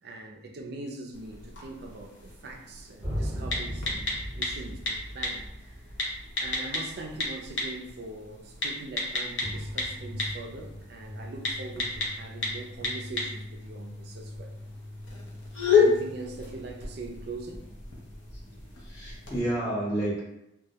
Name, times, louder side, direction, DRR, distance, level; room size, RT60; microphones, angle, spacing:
voice 1, 0.0-5.8 6.4-14.5 15.8-17.6, right 2 dB, 55° right, 2 dB, 0.3 m, -42 dB
sound 1, 1.1-19.4, left 4 dB, 70° left, 0.5 m, -32 dB
sound 2, 3.0-8.1 9.4-19.4, equal, 15° right, 0.8 m, -41 dB
voice 2, 18.3-20.2, right 1 dB, 15° left, -9 dB, 0.7 m, -31 dB
2.2 x 2.0 x 2.7 m, 0.85 s
head